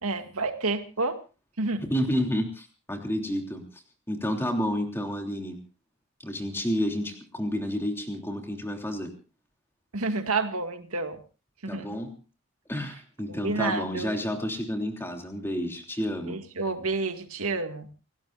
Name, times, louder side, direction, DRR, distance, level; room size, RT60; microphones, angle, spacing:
voice 1, 0.0-1.2 1.6-1.8 9.9-11.2 11.6-11.9 13.3-14.2 16.3-17.9, right 3 dB, 85° right, 6 dB, 2.1 m, -29 dB
voice 2, 1.8-3.8 4.1-5.6 6.2-9.1 11.7-12.1 12.7-16.4, equal, 10° left, 3 dB, 3.2 m, -30 dB
30.0 x 16.5 x 2.6 m, 0.34 s
head